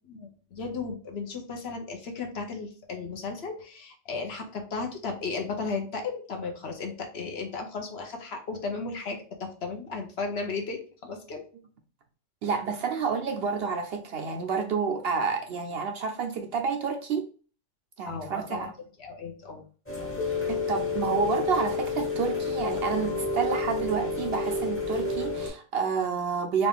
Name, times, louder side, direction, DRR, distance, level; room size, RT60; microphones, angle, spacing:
voice 1, 0.1-11.4 18.1-18.7 19.0-19.7, left 4 dB, 60° left, 3 dB, 1.0 m, -35 dB
voice 2, 12.4-17.3 18.0-18.7 20.7-26.7, right 5 dB, 65° right, 5 dB, 0.7 m, -29 dB
Rain, 19.9-25.5, left 3 dB, 10° left, 0.8 m, -30 dB
4.0 x 2.4 x 3.4 m, 0.39 s
omnidirectional pair, 1.3 m